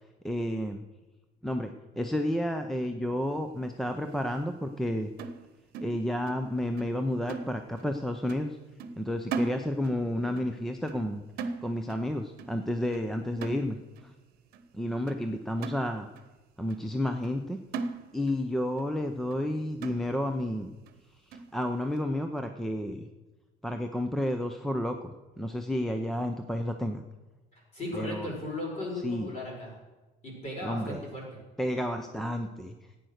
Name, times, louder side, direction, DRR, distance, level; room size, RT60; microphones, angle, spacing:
voice 1, 0.2-0.8 1.4-5.1 5.8-8.6 9.0-11.2 11.6-14.1 14.7-16.1 16.6-17.6 18.1-20.7 21.3-23.1 23.6-25.1 25.4-27.0 27.9-28.3 29.0-29.3 30.6-31.0 31.6-32.7, left 1 dB, ahead, 6 dB, 0.5 m, -31 dB
sound 1, 5.2-6.5 6.8-7.0 7.3-8.0 8.3-8.5 8.8-10.1 10.4-10.6 10.9-11.1 11.4-12.1 12.4-12.6 12.9-13.1 13.4-14.0 14.5-14.6 15.1-15.2 15.6-16.3 16.7-16.8 17.2-17.4 17.7-18.5 18.8-18.9 19.3-19.4 19.8-20.4 20.9-21.0 21.3-21.5, right 4 dB, 55° right, 1.1 m, -38 dB
voice 2, 27.7-29.7 30.2-31.4, left 1 dB, 35° left, -3 dB, 5.5 m, -36 dB
14.5 x 9.1 x 6.4 m, 1.2 s
cardioid pair, 170°, 18 cm